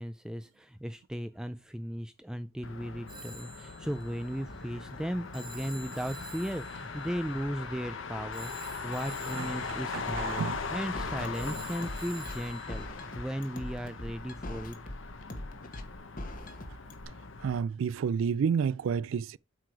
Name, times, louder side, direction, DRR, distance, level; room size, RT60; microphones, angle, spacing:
voice 1, 0.0-14.8, equal, 5° right, 0.3 m, -36 dB
Motor vehicle (road), 2.6-17.6, left 4 dB, 75° left, 1.0 m, -40 dB
Telephone, 3.1-12.9, right 2 dB, 25° right, 1.5 m, -50 dB
voice 2, 9.9-10.6 17.4-19.4, right 6 dB, 80° right, 0.3 m, -30 dB
sound 1, 10.1-17.0, left 1 dB, 40° left, 1.1 m, -41 dB
7.7 x 4.7 x 4.8 m
head